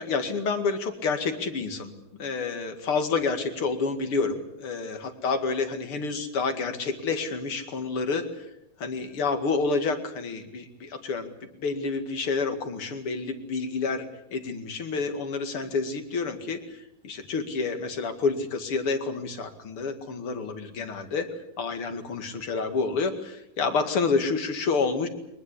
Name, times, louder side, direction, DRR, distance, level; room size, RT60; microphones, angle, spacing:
voice 1, 0.0-1.9 2.2-5.0 5.2-8.5 8.8-11.3 11.6-21.3 21.6-25.1, left 4 dB, 40° left, 8 dB, 2.5 m, -29 dB
23.5 x 20.5 x 8.4 m, 0.79 s
omnidirectional pair, 4.5 m